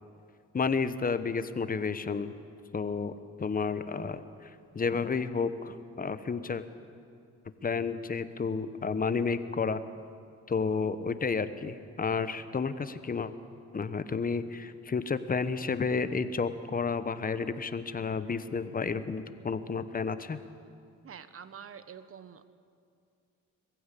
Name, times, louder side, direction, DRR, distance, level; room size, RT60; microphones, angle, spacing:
voice 1, 0.5-2.3 2.7-3.1 3.4-6.6 7.6-9.8 10.5-13.3 13.7-20.4, left 5 dB, 30° left, 12 dB, 1.0 m, -31 dB
voice 2, 21.0-22.5, right 7 dB, 45° right, 13 dB, 1.1 m, -46 dB
21.5 x 15.5 x 8.4 m, 2.4 s
cardioid pair, 90°, 30 cm